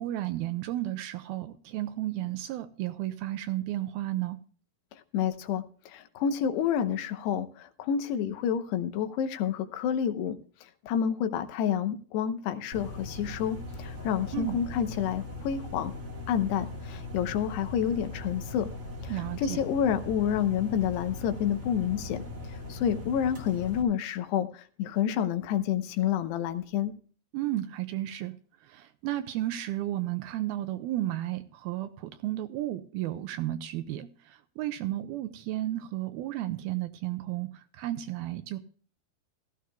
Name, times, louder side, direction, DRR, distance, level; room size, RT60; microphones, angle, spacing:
voice 1, 0.0-4.4 14.3-14.6 19.1-19.6 27.3-28.3 28.6-38.6, right 14 dB, 80° right, 2.4 m, -33 dB
voice 2, 4.9-10.4 10.8-15.9 16.3-18.7 19.0-22.2 22.7-26.9, left 8 dB, 85° left, 3.0 m, -29 dB
sound 1, 12.7-23.8, left 2 dB, 65° right, 0.7 m, -40 dB
16.0 x 14.0 x 2.3 m
omnidirectional pair, 4.8 m